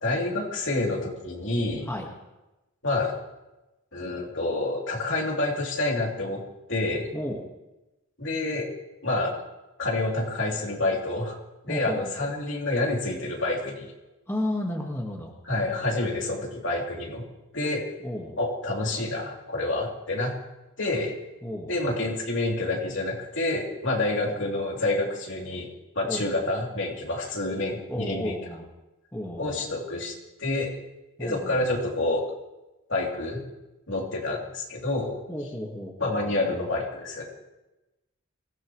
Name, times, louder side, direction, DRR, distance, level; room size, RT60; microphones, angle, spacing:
voice 1, 0.0-1.9 2.8-3.1 3.9-6.4 6.7-7.1 8.2-8.7 9.0-9.4 9.8-11.4 11.6-13.9 15.4-17.2 17.5-17.9 18.4-20.3 20.8-21.1 21.7-25.7 25.9-28.3 29.4-30.1 30.4-30.8 31.2-32.3 32.9-33.4 33.9-35.2 36.0-37.2, left 2 dB, 60° left, -1 dB, 3.1 m, -28 dB
voice 2, 7.1-7.4 11.7-12.3 14.3-15.3 18.0-18.4 21.4-21.7 24.2-24.3 26.0-26.3 27.9-28.7 29.1-29.8 31.2-31.7 35.3-36.7, left 1 dB, 10° left, -1 dB, 1.6 m, -33 dB
24.0 x 17.0 x 3.2 m, 1.0 s
head